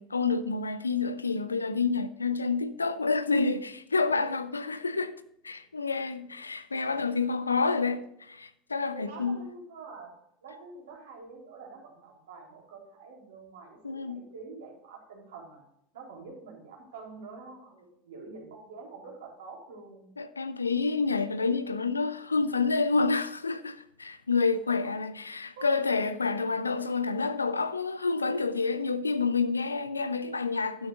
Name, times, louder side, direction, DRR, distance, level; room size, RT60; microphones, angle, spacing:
voice 1, 0.0-5.2 5.4-9.4 13.8-14.2 20.2-30.9, left 4 dB, 85° left, 0.6 m, -28 dB
voice 2, 8.9-10.1 10.4-15.6 15.9-20.1 25.6-25.8 26.3-26.6, right 4 dB, 70° right, 3.8 m, -46 dB
13.0 x 11.5 x 2.6 m
figure-of-eight pair, 75°, 0 cm